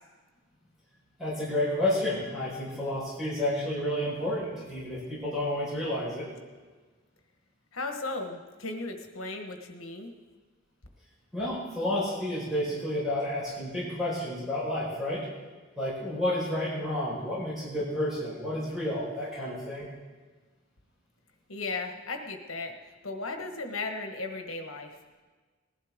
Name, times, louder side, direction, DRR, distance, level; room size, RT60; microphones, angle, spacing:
voice 1, 1.2-6.2 11.3-15.3 15.8-19.9, left 1 dB, ahead, -9 dB, 4.9 m, -30 dB
voice 2, 7.7-10.1 21.5-22.7 23.0-24.9, left 3 dB, 85° left, 4 dB, 1.5 m, -36 dB
19.5 x 11.5 x 3.7 m, 1.4 s
head